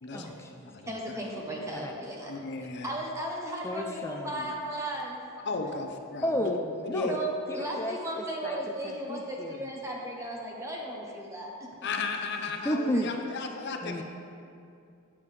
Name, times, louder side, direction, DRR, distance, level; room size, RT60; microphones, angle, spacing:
voice 1, 0.1-0.7 1.7-1.9 3.6-4.5 6.2-7.2 7.5-8.6 8.8-9.7 12.6-13.5 13.8-14.0, left 1 dB, 10° left, 2 dB, 0.3 m, -33 dB
voice 2, 0.9-2.3 2.8-5.2 7.1-11.9 12.9-13.0, right 1 dB, 15° right, -2 dB, 0.7 m, -36 dB
voice 3, 2.3-2.9 5.4-6.5 6.8-7.2 11.8-14.0, left 4 dB, 55° left, 4 dB, 0.6 m, -34 dB
8.4 x 7.1 x 3.2 m, 2.6 s
head